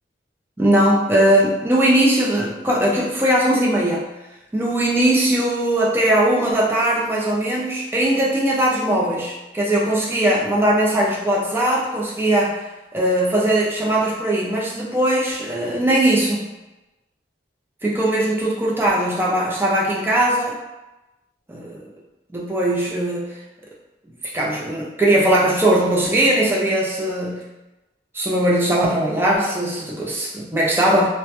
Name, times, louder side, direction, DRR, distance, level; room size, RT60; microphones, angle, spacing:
voice 1, 0.6-4.1 4.5-12.6 12.9-16.4 17.8-20.6 21.5-21.8 22.3-23.3 24.3-27.4 28.1-31.1, right 1 dB, 10° right, -4 dB, 0.4 m, -19 dB
2.1 x 2.0 x 2.8 m, 1.0 s
head